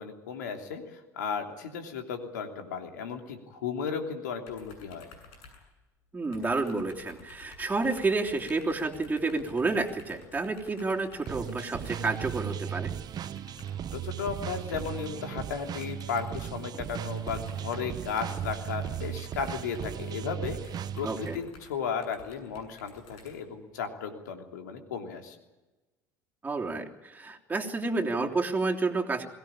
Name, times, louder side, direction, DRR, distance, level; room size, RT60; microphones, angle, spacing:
voice 1, 0.0-5.1 13.9-25.4, left 6 dB, 85° left, 4 dB, 3.1 m, -35 dB
sound 1, 4.5-6.0 6.3-12.3 13.2-13.9 14.5-15.2 15.7-16.5 17.0-23.8, left 3 dB, 70° left, 8.0 m, -53 dB
voice 2, 6.1-12.9 21.0-21.4 26.4-29.3, right 3 dB, 20° right, 1 dB, 3.3 m, -30 dB
sound 2, 11.3-21.4, right 10 dB, 45° right, 1.0 m, -36 dB
22.5 x 17.5 x 8.9 m, 1.1 s
hypercardioid pair, 70°, 9 cm